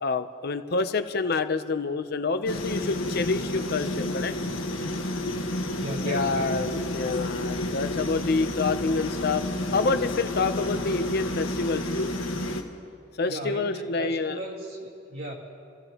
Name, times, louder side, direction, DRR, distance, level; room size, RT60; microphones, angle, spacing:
voice 1, 0.0-4.3 6.0-9.4 9.7-12.1 13.2-14.4, left 4 dB, 55° left, 10 dB, 0.7 m, -27 dB
sound 1, 2.5-12.6, left 1 dB, 90° left, 1.5 m, -30 dB
voice 2, 5.7-6.6 13.2-15.3, right 1 dB, 75° right, -4 dB, 1.9 m, -36 dB
29.5 x 15.0 x 3.0 m, 2.4 s
head